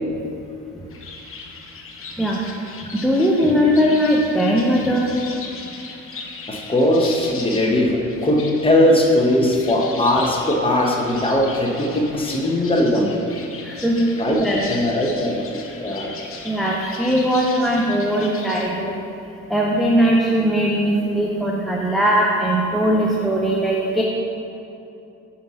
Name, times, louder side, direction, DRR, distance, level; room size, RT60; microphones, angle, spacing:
sound 1, 0.9-18.6, left 4 dB, 45° left, 0.8 m, -38 dB
voice 1, 2.9-5.1 13.6-14.0 14.4-14.8 16.5-19.0 19.5-24.0, equal, ahead, -3 dB, 0.6 m, -19 dB
voice 2, 6.5-13.1 14.2-14.4 14.7-15.5 15.8-16.1, left 1 dB, 20° left, -1 dB, 1.0 m, -19 dB
5.6 x 4.3 x 5.6 m, 2.8 s
cardioid pair, 90°, 30 cm